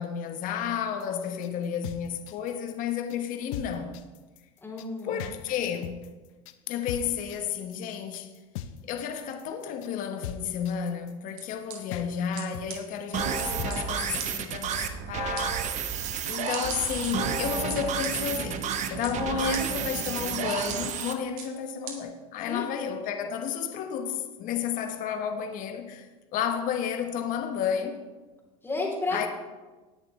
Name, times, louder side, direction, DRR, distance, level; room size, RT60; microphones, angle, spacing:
voice 1, 0.0-4.0 5.0-6.1 6.7-8.3 8.8-15.7 16.2-18.6 18.9-28.0 29.1-29.3, left 8 dB, 50° left, 1.1 m, -32 dB
sound 1, 1.0-14.4, left 9 dB, 70° left, 0.7 m, -41 dB
voice 2, 4.6-5.2 22.5-22.7 28.6-29.3, left 2 dB, 15° left, 3.4 m, -32 dB
sound 2, 11.4-11.8 12.4-12.5 12.7-12.8 13.4-13.8 14.2-14.3 14.7-14.8 15.4-15.5 16.0-16.2 16.5-17.1 17.7-18.1 18.7-19.1 19.5-19.6 20.0-20.1 20.7-20.8 21.4-21.5 21.9-22.0, right 8 dB, 75° right, 2.1 m, -38 dB
sound 3, 13.1-21.1, right 7 dB, 40° right, 1.0 m, -31 dB
19.0 x 6.7 x 3.2 m
supercardioid pair, 105°, 18 cm